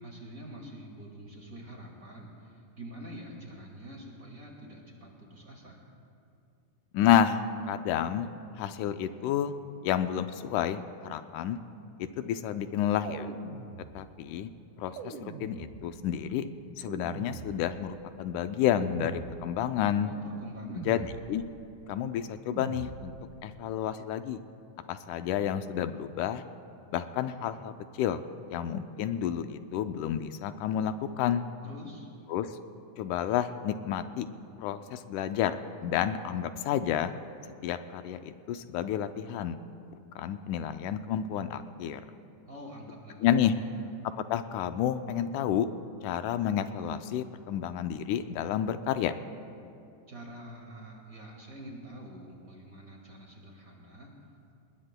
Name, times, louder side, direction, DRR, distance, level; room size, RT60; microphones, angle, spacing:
voice 1, 0.0-5.8 20.0-21.2 31.6-32.1 42.5-43.9 50.1-54.5, right 1 dB, 30° right, -1 dB, 2.1 m, -46 dB
voice 2, 6.9-8.3 8.6-9.5 9.8-11.6 12.2-13.3 13.9-14.5 14.8-16.5 16.8-20.1 20.9-21.4 21.9-23.1 23.4-24.4 24.9-26.4 26.9-28.2 28.5-31.5 32.3-32.5 33.0-34.3 34.6-37.1 37.6-39.6 40.2-42.0 43.2-43.5 44.3-45.7 46.0-49.1, left 10 dB, 80° left, 9 dB, 2.1 m, -30 dB
sound 1, 13.0-14.3 15.0-16.1 16.9-18.0 18.8-19.8 20.7-21.6 22.5-23.4, right 5 dB, 85° right, 2.6 m, -43 dB
27.5 x 20.0 x 2.2 m, 2.6 s
omnidirectional pair, 3.6 m